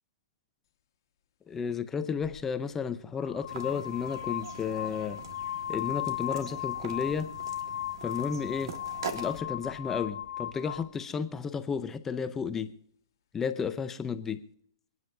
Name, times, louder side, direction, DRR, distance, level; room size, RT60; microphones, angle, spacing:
voice 1, 1.5-5.2 5.7-7.3 8.0-8.8 9.1-12.7 13.3-14.4, left 6 dB, 15° left, 10 dB, 0.7 m, -33 dB
sound 1, 2.2-2.4 3.2-10.9, left 11 dB, 55° left, 1.6 m, -36 dB
sound 2, 3.5-9.4, right 5 dB, 65° right, 1.7 m, -43 dB
28.5 x 9.7 x 2.7 m, 0.67 s
hypercardioid pair, 145°, 3 cm